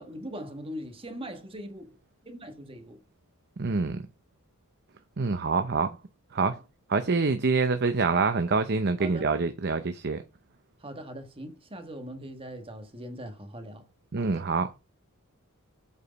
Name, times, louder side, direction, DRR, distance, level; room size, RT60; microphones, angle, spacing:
voice 1, 0.0-2.0 2.2-3.0 6.5-6.6 9.0-9.3 10.8-13.9 14.2-14.5, equal, 25° right, 1.5 m, -41 dB
voice 2, 3.6-4.0 5.2-6.0 6.3-6.6 6.9-10.2 14.1-14.7, right 4 dB, 50° right, 0.7 m, -26 dB
8.3 x 4.9 x 5.2 m
head